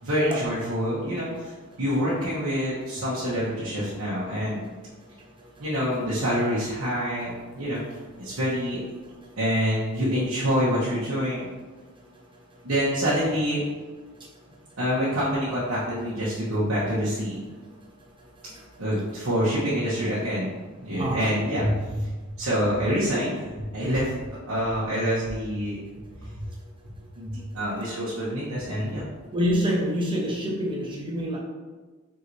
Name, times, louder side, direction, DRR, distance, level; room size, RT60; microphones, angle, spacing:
voice 1, 0.0-1.5 1.8-4.6 5.6-7.8 8.2-8.8 9.4-11.5 12.6-13.6 14.8-17.4 18.8-20.5 20.8-25.8 26.2-26.3 27.2-29.1, equal, 75° right, -9 dB, 1.0 m, -26 dB
voice 2, 21.0-21.3 29.3-31.4, equal, 25° right, -3 dB, 0.9 m, -26 dB
4.6 x 3.7 x 2.7 m, 1.3 s
head